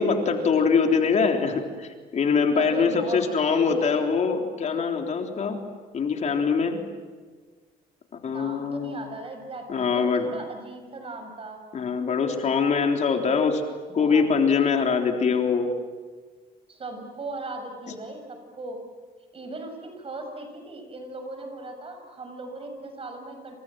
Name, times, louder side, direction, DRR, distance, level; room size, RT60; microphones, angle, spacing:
voice 1, 0.0-5.6 5.9-6.8 8.2-9.0 9.7-10.3 11.7-13.6 13.9-15.7, left 5 dB, 45° left, 3 dB, 3.6 m, -23 dB
voice 2, 2.6-3.7 8.2-11.6 13.9-14.3 16.7-18.8 19.3-23.6, right 2 dB, 35° right, 6 dB, 7.0 m, -38 dB
28.5 x 27.0 x 7.7 m, 1.5 s
cardioid pair, 110°, 17 cm